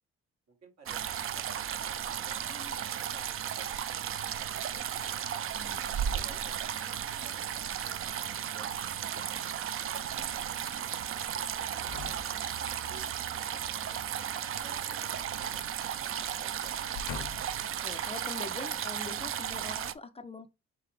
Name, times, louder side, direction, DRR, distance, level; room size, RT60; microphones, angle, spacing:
voice 1, 0.5-2.4 2.7-5.3 5.8-6.9 7.2-8.7 9.1-9.3 9.6-14.0 14.6-16.9, right 3 dB, 60° right, 1.5 m, -56 dB
sound 1, 0.9-19.9, right 9 dB, 45° right, 0.4 m, -35 dB
voice 2, 2.5-2.9 5.5-5.9 6.1-6.4 13.8-14.1 17.6-20.5, left 3 dB, 20° left, 0.3 m, -44 dB
sound 2, 11.8-12.9 14.5-15.6 15.9-16.1 16.7-17.7 18.3-18.4, left 6 dB, 80° left, 0.6 m, -44 dB
3.8 x 3.6 x 3.2 m
cardioid pair, 90°, 30 cm